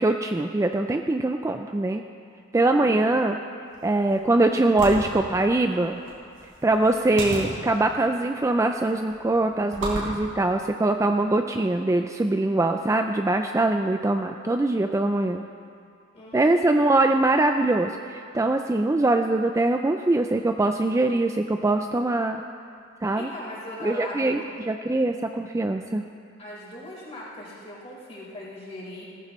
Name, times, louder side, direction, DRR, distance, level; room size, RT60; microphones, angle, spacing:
voice 1, 0.0-2.0 2.5-3.4 3.8-6.0 6.6-15.4 16.3-22.4 23.0-23.3 23.8-26.0, right 2 dB, 15° right, 5 dB, 0.3 m, -23 dB
sound 1, 3.7-11.3, right 1 dB, 75° right, 4.0 m, -37 dB
voice 2, 16.1-16.8 23.1-24.5 26.4-29.0, left 1 dB, 30° left, -6 dB, 4.1 m, -39 dB
18.0 x 14.5 x 3.1 m, 2.3 s
head